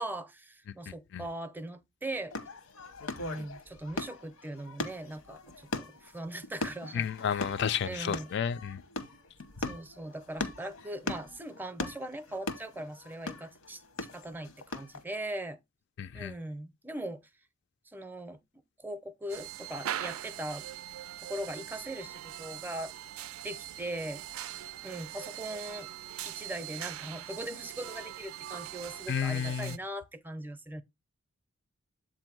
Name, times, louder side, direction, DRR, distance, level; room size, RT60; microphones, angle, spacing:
voice 1, 0.0-2.4 3.2-7.4 7.8-8.3 9.6-13.8 14.1-15.6 16.1-17.2 17.9-18.4 18.8-20.7 21.2-22.9 23.4-24.2 24.8-25.9 26.2-30.8, right 1 dB, 10° right, 0.5 m, -40 dB
voice 2, 0.9-1.2 6.9-8.8 16.0-16.3 29.1-29.8, left 7 dB, 55° left, 0.3 m, -32 dB
sound 1, 2.3-15.0, left 2 dB, 85° left, 0.9 m, -39 dB
sound 2, 19.3-29.8, right 12 dB, 75° right, 0.3 m, -41 dB
7.7 x 2.6 x 5.9 m
head